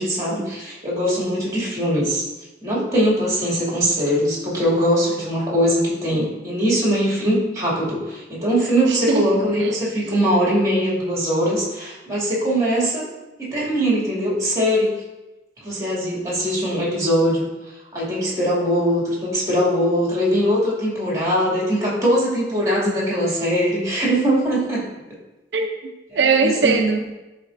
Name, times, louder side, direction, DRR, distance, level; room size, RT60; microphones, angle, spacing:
voice 1, 0.0-2.2 2.6-13.1 13.4-14.9 15.6-17.5 17.9-24.9 26.4-26.9, equal, 20° right, -5 dB, 2.3 m, -21 dB
voice 2, 8.9-9.3 9.6-9.7 10.0-10.1 25.5-27.1, right 4 dB, 80° right, 3 dB, 0.5 m, -21 dB
12.0 x 4.2 x 2.5 m, 1.0 s
head